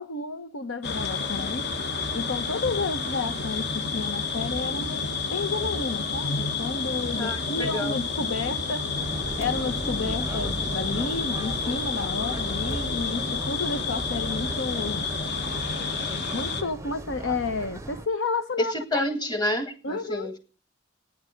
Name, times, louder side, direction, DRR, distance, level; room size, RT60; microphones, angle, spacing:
voice 1, 0.0-1.7 2.1-8.9 9.4-15.1 16.3-19.1 19.8-20.3, left 3 dB, 85° left, 1.0 m, -31 dB
sound 1, 0.8-16.6, left 4 dB, 55° left, 1.3 m, -30 dB
voice 2, 7.2-8.0 18.6-20.4, left 1 dB, 20° left, 1.9 m, -29 dB
sound 2, 9.0-18.1, right 1 dB, 15° right, 0.6 m, -37 dB
13.5 x 9.7 x 5.1 m
head